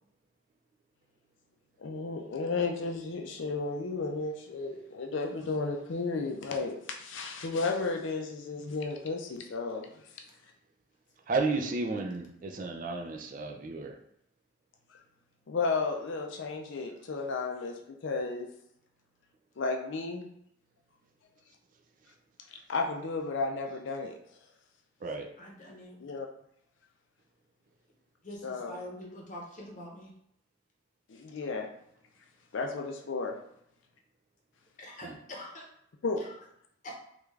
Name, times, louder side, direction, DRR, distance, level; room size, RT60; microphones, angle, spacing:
voice 1, 1.8-9.9 15.5-18.5 19.6-20.3 22.7-24.1 26.0-26.3 28.4-28.8 31.1-31.7 32.5-33.4 36.0-36.2, left 3 dB, 65° left, 3 dB, 0.5 m, -33 dB
voice 2, 11.3-14.0 25.0-25.3 35.0-35.2, right 3 dB, 40° right, 4 dB, 0.4 m, -32 dB
voice 3, 25.4-26.0 28.2-30.1 34.8-35.7 36.2-36.3 36.8-36.9, left 1 dB, 40° left, -1 dB, 0.8 m, -44 dB
3.4 x 2.4 x 3.2 m, 0.74 s
head